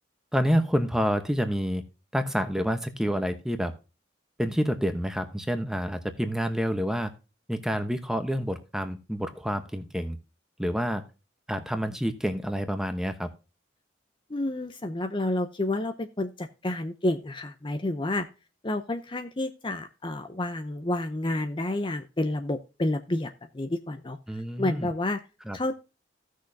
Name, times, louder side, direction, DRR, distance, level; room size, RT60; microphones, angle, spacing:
voice 1, 0.3-1.8 2.1-3.7 4.4-7.1 7.5-10.2 10.6-11.0 11.5-13.3 24.3-24.9 25.5-25.6, equal, 5° right, 8 dB, 0.9 m, -28 dB
voice 2, 14.3-18.3 18.6-24.2 24.6-25.2 25.5-25.7, left 1 dB, 25° left, 7 dB, 0.6 m, -30 dB
16.0 x 6.4 x 2.7 m, 0.30 s
head